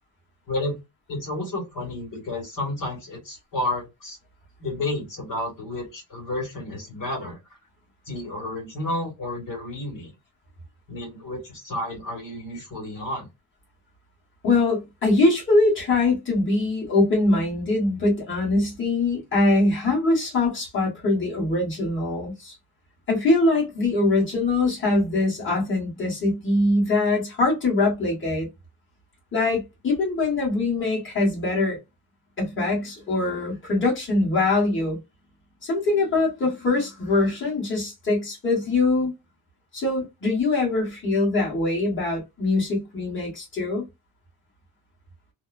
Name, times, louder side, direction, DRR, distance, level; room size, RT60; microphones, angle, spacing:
voice 1, 0.5-0.8 1.1-4.2 4.6-7.4 8.0-10.1 10.9-13.3, left 1 dB, 60° left, 1.6 m, -31 dB
voice 2, 14.4-22.5 23.1-28.5 29.3-31.8 32.4-35.0 35.6-39.1 39.7-43.8, left 2 dB, 35° left, 1.6 m, -23 dB
2.9 x 2.2 x 2.3 m
cardioid pair, 150°, 36 cm